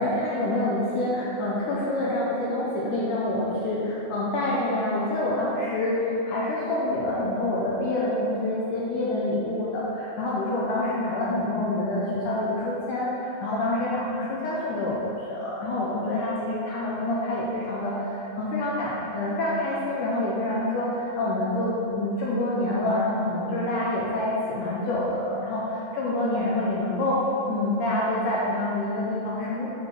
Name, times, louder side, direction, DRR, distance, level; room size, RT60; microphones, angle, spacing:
voice 1, 0.0-6.0 6.2-29.7, left 1 dB, 85° left, -5 dB, 1.8 m, -27 dB
8.3 x 5.7 x 4.4 m, 3.0 s
omnidirectional pair, 4.8 m